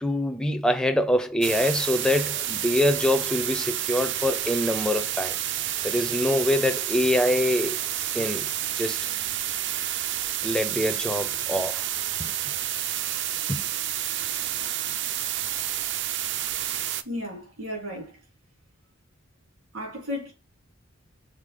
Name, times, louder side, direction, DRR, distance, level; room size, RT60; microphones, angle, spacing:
voice 1, 0.0-5.4 5.8-7.8 8.1-8.5 8.8-9.0 10.4-11.9 12.2-12.3 13.5-13.6, left 1 dB, 5° left, 0.4 m, -25 dB
sound 1, 1.4-17.0, right 11 dB, 60° right, 0.5 m, -29 dB
voice 2, 17.0-18.2 19.7-20.3, left 1 dB, 85° right, 3.8 m, -34 dB
6.6 x 4.0 x 3.6 m
head